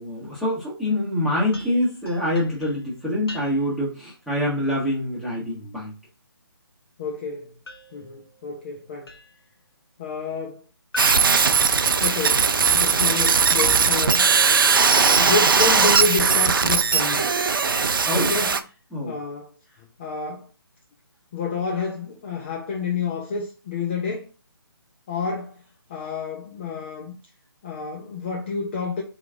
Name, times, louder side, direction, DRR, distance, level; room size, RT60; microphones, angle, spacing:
voice 1, 0.0-5.9 15.1-15.3 18.0-18.3 18.9-19.1, left 1 dB, ahead, 1.4 m, -25 dB
sound 1, 1.5-3.9 7.7-9.5 10.9-12.4, left 2 dB, 70° left, 1.4 m, -43 dB
voice 2, 7.0-7.5 7.9-9.1 10.0-10.6 12.0-14.4 15.2-17.3 18.1-18.6 19.1-19.5 19.8-20.5 21.3-24.3 25.1-25.6 25.9-27.2 27.6-29.0, left 5 dB, 25° left, 0.6 m, -29 dB
sound 2, 11.0-18.6, right 5 dB, 60° right, 0.5 m, -19 dB
3.9 x 3.0 x 3.4 m
figure-of-eight pair, 145°, 13 cm